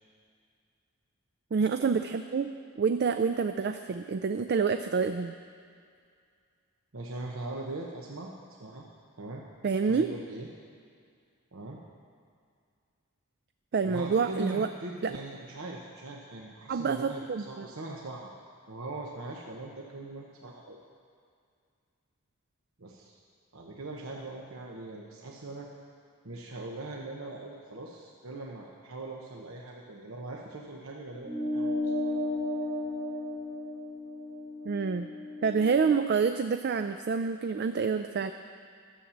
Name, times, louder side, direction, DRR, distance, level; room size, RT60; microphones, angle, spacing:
voice 1, 1.5-2.5 2.8-5.3 9.6-10.1 13.7-14.7 15.0-15.1 16.7-17.7 34.7-35.1 35.4-38.3, right 5 dB, 50° right, 8 dB, 0.3 m, -27 dB
voice 2, 6.9-8.3 8.6-8.8 9.2-9.4 9.8-10.5 11.5-11.8 13.8-18.3 18.7-20.8 22.8-23.2 23.5-25.7 26.2-32.2, right 2 dB, 70° right, -1 dB, 1.0 m, -41 dB
sound 1, 31.2-36.0, left 1 dB, 20° right, 2.0 m, -34 dB
12.5 x 7.3 x 7.1 m, 2.2 s
head